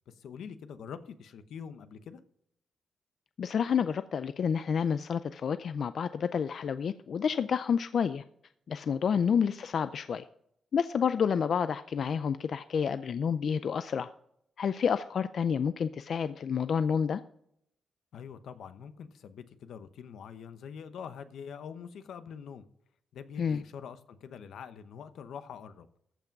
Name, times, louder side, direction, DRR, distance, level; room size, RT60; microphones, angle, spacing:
voice 1, 0.1-2.2 9.1-9.2 18.1-22.7 23.1-25.9, left 7 dB, 85° left, 0.9 m, -45 dB
voice 2, 3.4-8.2 8.7-10.3 10.7-14.1 14.6-17.2 23.4-23.6, left 7 dB, 60° left, 0.4 m, -29 dB
14.5 x 5.9 x 5.3 m
cardioid pair, 115°, 0 cm